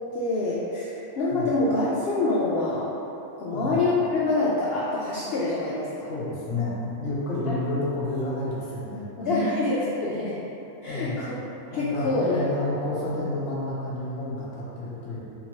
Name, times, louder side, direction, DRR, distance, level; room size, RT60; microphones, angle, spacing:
voice 1, 0.1-2.9 3.4-6.1 7.5-7.6 9.2-10.4 10.8-11.4 11.7-12.4, left 2 dB, 85° left, -7 dB, 0.5 m, -26 dB
voice 2, 3.4-3.8 6.1-9.5 10.9-11.2 11.7-15.2, left 2 dB, 55° left, -7 dB, 1.1 m, -30 dB
3.7 x 2.7 x 2.9 m, 3.0 s
omnidirectional pair, 1.6 m